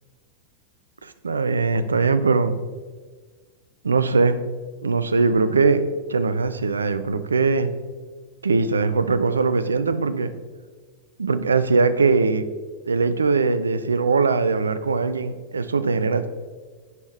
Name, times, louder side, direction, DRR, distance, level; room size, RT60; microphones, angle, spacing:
voice 1, 1.0-2.6 3.8-4.5 4.8-5.8 6.1-7.7 8.4-10.3 11.2-12.4 12.9-16.3, right 4 dB, 75° right, 12 dB, 0.4 m, -21 dB
9.2 x 5.3 x 3.3 m, 1.4 s
figure-of-eight pair, 90°, 0 cm